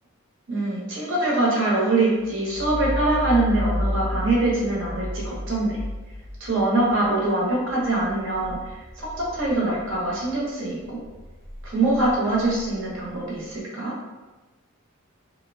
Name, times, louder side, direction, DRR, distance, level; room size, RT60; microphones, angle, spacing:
voice 1, 0.5-5.8 6.4-11.0 11.6-13.9, right 2 dB, 60° right, -5 dB, 0.8 m, -23 dB
sound 1, 2.2-10.4 10.8-13.4, left 1 dB, 15° right, 0.9 m, -33 dB
2.8 x 2.0 x 2.6 m, 1.2 s
head